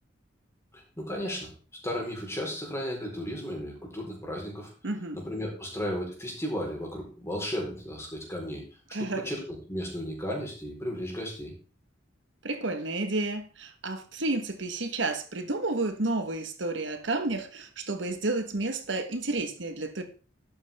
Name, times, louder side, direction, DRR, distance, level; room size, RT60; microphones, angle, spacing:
voice 1, 0.7-1.5 1.8-4.7 5.1-8.6 9.0-9.4 9.7-11.5, equal, 15° left, 4.4 m, -34 dB
voice 2, 4.8-5.2 8.9-9.2 12.4-20.0, right 2 dB, 70° right, 1.5 m, -31 dB
12.0 x 8.8 x 3.6 m
head